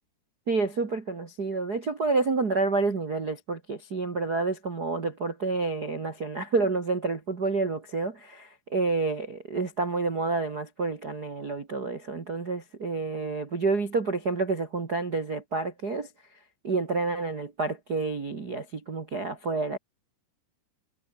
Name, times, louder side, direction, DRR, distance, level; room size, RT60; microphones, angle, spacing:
voice 1, 0.5-19.8, right 3 dB, 40° right, 1.4 m, -29 dB
omnidirectional pair, 5.0 m